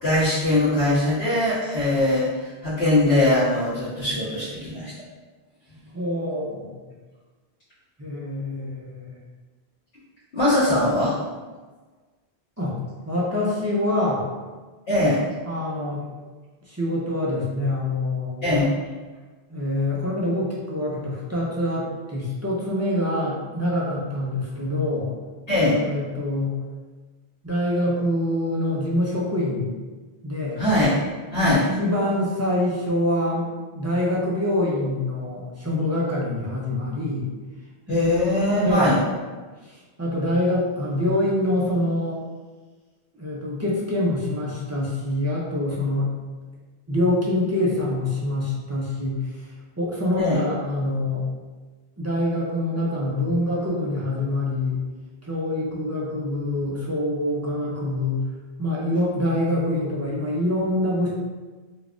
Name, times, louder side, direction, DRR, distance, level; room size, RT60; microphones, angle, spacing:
voice 1, 0.0-4.9 10.3-11.2 14.9-15.2 18.4-18.7 25.5-25.8 30.6-31.0 31.3-31.7 37.9-39.0 50.1-50.4, left 1 dB, 70° left, -12 dB, 1.3 m, -21 dB
voice 2, 5.9-6.7 8.0-9.1 12.6-12.8 13.1-14.3 15.5-16.1 16.7-18.4 19.5-25.1 25.7-26.6 27.4-29.7 30.2-30.6 31.3-33.5 33.8-37.3 37.9-38.0 38.6-38.9 40.0-42.2 43.2-46.1 46.9-49.2 49.8-51.2 52.0-54.8 55.2-58.2 58.6-61.1, left 1 dB, 25° right, -6 dB, 0.4 m, -25 dB
3.9 x 2.3 x 2.4 m, 1.3 s
omnidirectional pair, 1.1 m